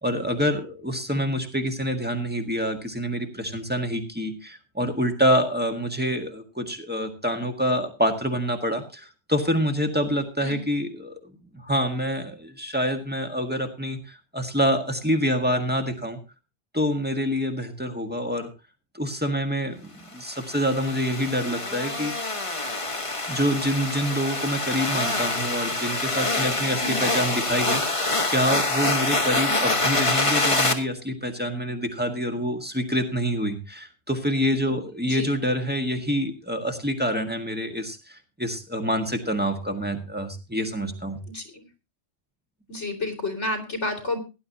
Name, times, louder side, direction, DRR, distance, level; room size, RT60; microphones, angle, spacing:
voice 1, 0.0-16.2 16.7-18.5 18.9-22.1 23.3-41.2, equal, 10° right, 5 dB, 1.6 m, -26 dB
sound 1, 20.3-30.7, left 2 dB, 30° left, 1.4 m, -26 dB
voice 2, 41.3-41.7 42.7-44.2, left 2 dB, 85° left, 4 dB, 3.3 m, -30 dB
17.5 x 11.0 x 2.8 m, 0.28 s
omnidirectional pair, 1.2 m